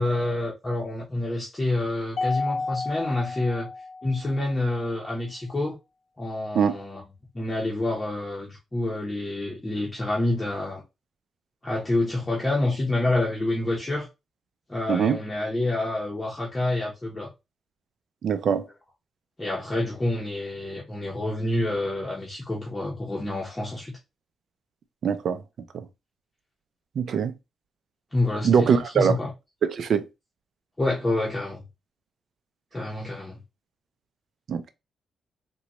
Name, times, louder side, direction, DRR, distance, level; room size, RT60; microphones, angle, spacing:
voice 1, 0.0-3.7 4.0-5.7 6.2-7.0 7.3-10.8 11.6-14.1 14.7-17.3 19.4-23.9 28.1-29.3 30.8-31.6 32.7-33.4, left 2 dB, 20° left, 0.9 m, -28 dB
Mallet percussion, 2.2-4.6, left 3 dB, 65° left, 0.4 m, -32 dB
voice 2, 14.9-15.2 18.2-18.6 25.0-25.4 27.0-27.3 28.4-29.2 29.6-30.0 34.5-34.7, right 7 dB, 65° right, 0.5 m, -22 dB
3.8 x 2.3 x 3.0 m
cardioid pair, 100°, 0 cm